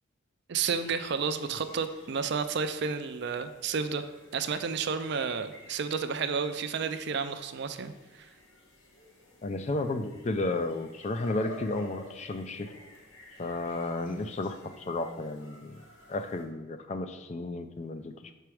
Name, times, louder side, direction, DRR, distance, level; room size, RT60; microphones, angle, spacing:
voice 1, 0.5-4.0 4.3-8.3, right 5 dB, 55° right, 9 dB, 0.4 m, -31 dB
sound 1, 0.6-16.4, left 1 dB, 65° left, 1.5 m, -52 dB
voice 2, 9.4-12.7 13.4-15.8 16.1-18.3, left 2 dB, 35° left, 9 dB, 0.4 m, -33 dB
6.0 x 4.5 x 4.8 m, 1.1 s
head